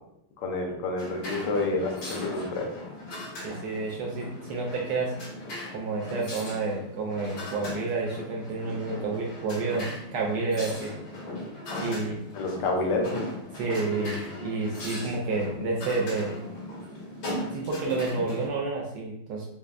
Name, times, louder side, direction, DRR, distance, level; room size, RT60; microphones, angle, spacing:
voice 1, 0.4-2.7 12.4-13.4, left 2 dB, 90° left, 1 dB, 1.6 m, -29 dB
sound 1, 1.0-18.5, left 1 dB, 65° left, 1.9 m, -38 dB
voice 2, 3.4-5.1 5.7-10.9 11.8-12.2 13.5-16.3 17.5-19.5, right 3 dB, 80° right, -1 dB, 0.9 m, -30 dB
5.4 x 2.0 x 2.4 m, 0.75 s
omnidirectional pair, 2.4 m